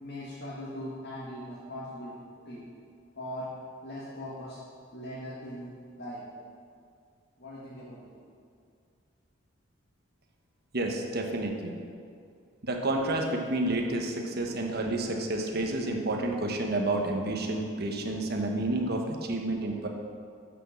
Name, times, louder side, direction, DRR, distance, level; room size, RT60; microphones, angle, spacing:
voice 1, 0.0-2.1 2.5-2.6 3.2-3.5 3.8-4.6 4.9-5.7 6.0-6.2 7.4-8.1, equal, 55° left, -7 dB, 1.9 m, -40 dB
voice 2, 10.7-11.7 12.6-19.9, right 2 dB, 55° right, 2 dB, 1.2 m, -30 dB
8.8 x 6.5 x 7.4 m, 2.3 s
head